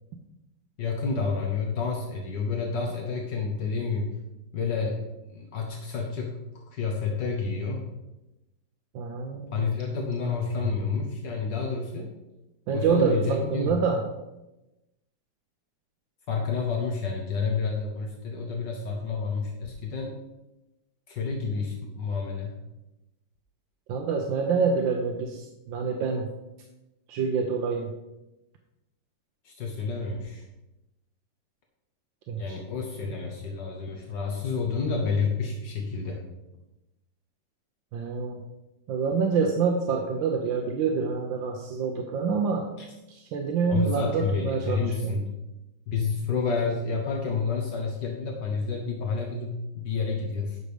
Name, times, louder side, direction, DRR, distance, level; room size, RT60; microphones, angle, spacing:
voice 1, 0.8-4.1 4.5-5.0 5.3-7.9 9.5-12.1 12.7-13.7 16.3-20.1 21.1-22.6 29.4-30.4 32.4-36.2 43.7-45.3 45.9-50.6, left 4 dB, 70° left, 0 dB, 1.7 m, -29 dB
voice 2, 8.9-9.7 12.7-14.0 23.9-26.3 27.1-27.9 32.3-32.6 37.9-38.4 38.9-42.7 43.1-45.2, right 5 dB, 85° right, 3 dB, 1.6 m, -27 dB
9.7 x 6.3 x 5.1 m, 0.99 s
omnidirectional pair, 2.0 m